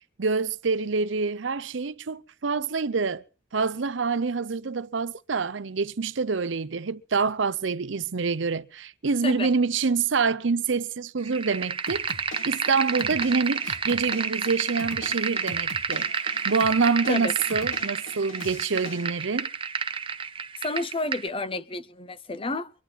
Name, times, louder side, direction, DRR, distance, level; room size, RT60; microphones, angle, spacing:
voice 1, 0.2-3.2 3.5-12.1 12.4-19.5, right 4 dB, 70° right, 0.7 m, -26 dB
sound 1, 11.2-21.3, right 5 dB, 25° right, 0.8 m, -30 dB
sound 2, 11.9-19.1, left 2 dB, 85° left, 1.9 m, -43 dB
voice 2, 20.6-22.7, left 2 dB, 30° left, 0.8 m, -30 dB
24.5 x 11.0 x 4.1 m
head